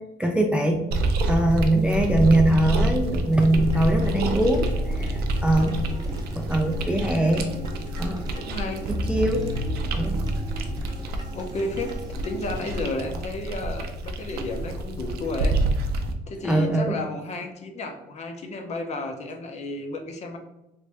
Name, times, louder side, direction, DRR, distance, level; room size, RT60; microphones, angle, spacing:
voice 1, 0.2-0.8 1.3-5.8 6.4-7.4 7.9-8.2 8.9-9.5 9.9-10.2 16.4-17.0, right 1 dB, 5° right, 2 dB, 0.3 m, -22 dB
sound 1, 0.9-16.1, right 1 dB, 70° right, 0.5 m, -28 dB
sound 2, 3.3-12.9, equal, 25° right, 0.7 m, -32 dB
voice 2, 5.5-6.0 8.3-8.9 11.3-15.6 16.3-20.4, left 2 dB, 40° left, 4 dB, 0.6 m, -32 dB
3.1 x 2.5 x 3.3 m, 0.93 s
cardioid pair, 110°, 17 cm